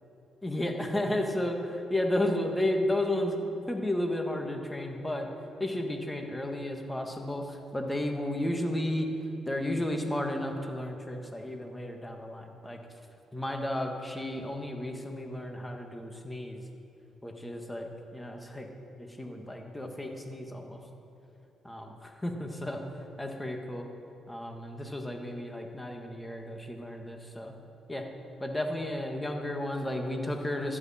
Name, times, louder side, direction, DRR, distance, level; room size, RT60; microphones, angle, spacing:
voice 1, 0.4-3.4 3.7-5.3 5.6-9.1 9.5-12.8 13.3-16.6 17.2-18.7 19.0-20.8 21.6-23.9 24.3-27.5 27.9-28.1 28.4-30.8, left 1 dB, 10° left, 3 dB, 1.6 m, -33 dB
14.0 x 11.0 x 4.3 m, 3.0 s
cardioid pair, 90°, 0 cm